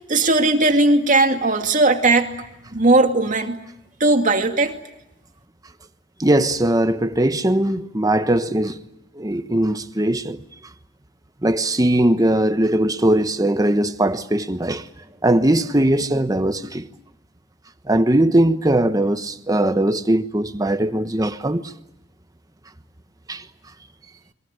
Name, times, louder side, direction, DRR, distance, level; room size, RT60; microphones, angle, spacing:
voice 1, 0.1-2.3 2.7-3.6 4.0-4.7, right 2 dB, 45° right, 2.4 m, -17 dB
voice 2, 6.2-8.8 9.2-10.4 11.4-14.9 15.2-16.9 17.9-21.6 23.3-23.4, right 1 dB, 20° right, 1.2 m, -20 dB
30.0 x 22.5 x 8.1 m
head